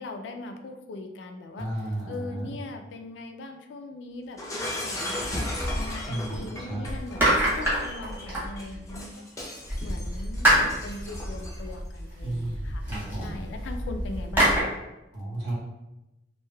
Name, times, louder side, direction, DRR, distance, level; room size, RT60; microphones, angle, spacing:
voice 1, 0.0-9.5 9.8-12.9 13.2-14.8, left 2 dB, 70° left, 6 dB, 0.3 m, -40 dB
voice 2, 1.6-2.5 6.1-6.8 12.2-13.4 15.1-15.5, right 1 dB, 60° right, -7 dB, 1.2 m, -33 dB
Shatter, 4.4-11.7, left 1 dB, 15° left, 0.5 m, -36 dB
sound 1, 5.2-6.4 6.8-9.0 9.7-14.6, equal, 10° right, 1.1 m, -27 dB
3.1 x 2.6 x 2.2 m, 0.98 s
head